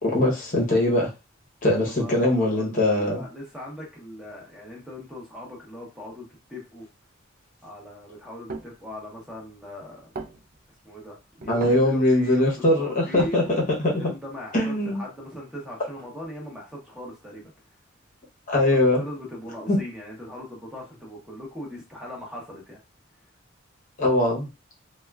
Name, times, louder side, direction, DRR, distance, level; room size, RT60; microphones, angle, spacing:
voice 1, 0.0-1.1 1.6-3.2 11.5-14.1 14.5-15.0 18.5-19.0 19.7-19.8 24.0-24.5, left 1 dB, 40° left, -2 dB, 0.8 m, -21 dB
voice 2, 1.9-6.9 7.6-10.1 10.8-13.4 13.7-17.5 18.5-22.8, left 1 dB, 5° right, -3 dB, 0.7 m, -39 dB
sound 1, 8.3-8.8 9.5-9.6 9.9-10.0 10.2-10.8 11.4-11.9 12.4-12.5 12.7-13.8, right 3 dB, 45° right, 0.4 m, -37 dB
3.5 x 2.2 x 2.3 m, 0.28 s
head